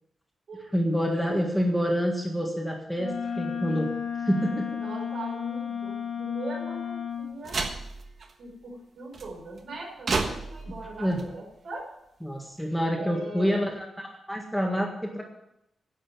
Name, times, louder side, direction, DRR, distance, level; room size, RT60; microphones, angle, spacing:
voice 1, 0.7-3.9 4.2-4.8 11.0-11.2 12.2-15.2, equal, ahead, 0 dB, 1.7 m, -27 dB
Wind instrument woodwind instrument, 3.0-7.3, left 7 dB, 85° left, 2.6 m, -33 dB
voice 2, 4.7-7.6 8.4-11.8 12.9-13.6, right 2 dB, 65° right, 0 dB, 4.7 m, -40 dB
sound 1, 7.4-8.3 9.1-9.6 10.1-11.4, right 3 dB, 45° right, 1.3 m, -32 dB
10.5 x 7.8 x 9.3 m, 0.82 s
wide cardioid pair, 165°, 0 cm